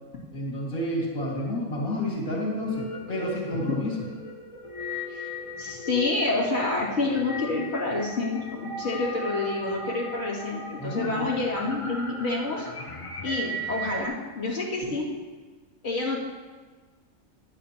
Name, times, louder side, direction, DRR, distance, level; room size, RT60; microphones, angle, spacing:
voice 1, 0.3-4.0 10.8-11.3, left 1 dB, 90° left, -4 dB, 2.7 m, -30 dB
sound 1, 2.6-14.1, equal, 30° left, 0.8 m, -37 dB
voice 2, 5.6-12.7 13.2-15.1 15.8-16.2, left 3 dB, 55° left, -7 dB, 2.7 m, -28 dB
15.0 x 11.0 x 2.9 m, 1.4 s
omnidirectional pair, 1.5 m